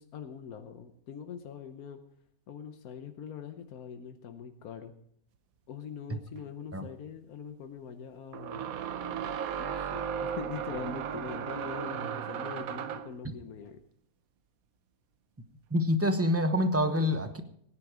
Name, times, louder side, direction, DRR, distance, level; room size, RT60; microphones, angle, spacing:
voice 1, 0.0-2.0 2.5-4.9 5.7-8.6 9.6-13.8, left 7 dB, 90° left, 7 dB, 1.4 m, -43 dB
sound 1, 6.4-6.5 8.3-13.2, right 8 dB, 80° right, 1.2 m, -35 dB
voice 2, 15.7-17.4, left 1 dB, 10° right, 8 dB, 0.8 m, -26 dB
18.0 x 10.0 x 5.0 m, 0.69 s
omnidirectional pair, 1.5 m